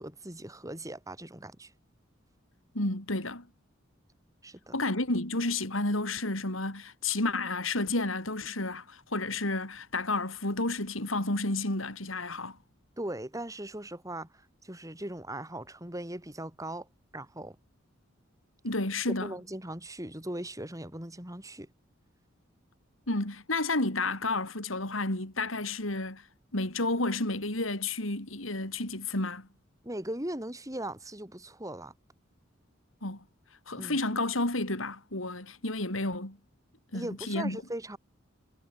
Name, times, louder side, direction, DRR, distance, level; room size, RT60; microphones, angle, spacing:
voice 1, 0.0-1.7 4.4-4.7 13.0-16.9 17.1-17.6 19.2-21.7 29.8-31.9 33.8-34.0 36.9-38.0, right 1 dB, 15° right, 6.5 m, -39 dB
voice 2, 2.7-3.5 4.7-12.6 18.6-19.3 23.1-26.2 26.5-29.5 33.0-33.2 33.7-36.4 36.9-37.6, left 2 dB, 90° left, 5.4 m, -31 dB
head